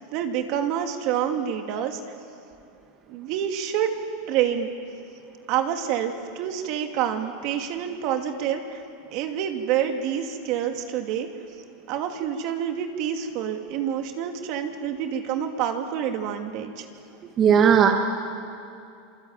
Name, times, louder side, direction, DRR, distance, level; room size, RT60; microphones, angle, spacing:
voice 1, 0.1-2.1 3.1-3.9 4.3-4.7 5.5-8.8 9.1-11.3 11.9-16.9, right 9 dB, 55° right, 5 dB, 2.6 m, -27 dB
voice 2, 17.4-17.9, right 8 dB, 35° right, 3 dB, 2.1 m, -16 dB
26.5 x 24.5 x 9.1 m, 2.5 s
supercardioid pair, 125°, 0 cm